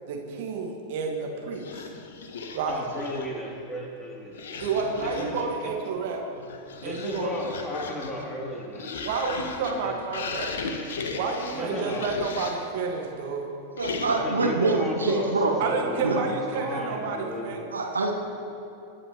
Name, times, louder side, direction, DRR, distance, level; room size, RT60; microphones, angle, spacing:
voice 1, 0.1-1.9 2.5-2.8 4.6-6.2 6.8-7.3 9.0-10.5 11.1-13.5 15.6-17.8, right 4 dB, 50° right, 1 dB, 1.7 m, -30 dB
sound 1, 1.5-3.4 4.3-5.6 6.3-12.8 13.8-14.4, left 4 dB, 60° left, 1.1 m, -37 dB
voice 2, 2.7-4.4 4.8-5.7 6.8-9.0 9.8-9.9 11.5-12.1 14.1-17.5, equal, 10° left, -4 dB, 3.1 m, -34 dB
voice 3, 13.8-15.5 16.0-16.2 17.7-18.1, right 3 dB, 75° right, 2 dB, 1.3 m, -25 dB
24.5 x 9.8 x 3.1 m, 2.6 s
figure-of-eight pair, 90°, 0 cm